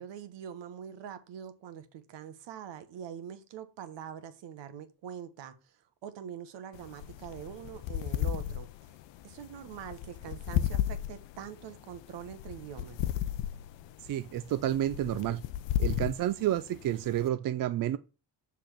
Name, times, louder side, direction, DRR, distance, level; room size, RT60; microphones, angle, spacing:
voice 1, 0.0-8.7 9.2-13.0 15.8-16.1, right 9 dB, 75° right, 1.1 m, -44 dB
sound 1, 6.7-17.3, left 12 dB, 85° left, 0.6 m, -35 dB
voice 2, 14.0-15.4 15.8-18.0, right 12 dB, 50° right, 0.5 m, -30 dB
6.9 x 3.6 x 6.0 m
cardioid pair, 115°, 43 cm